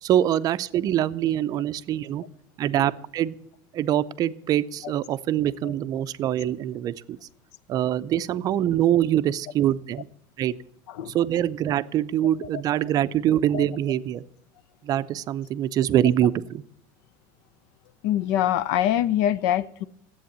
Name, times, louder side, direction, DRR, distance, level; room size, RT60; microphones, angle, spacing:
voice 1, 0.0-2.2 2.6-3.3 3.7-7.2 7.7-10.0 10.4-10.5 11.1-14.2 14.8-16.6, right 11 dB, 35° right, 0.5 m, -24 dB
voice 2, 18.0-19.9, left 11 dB, 70° left, 0.6 m, -24 dB
10.5 x 8.1 x 9.6 m
supercardioid pair, 140°, 10 cm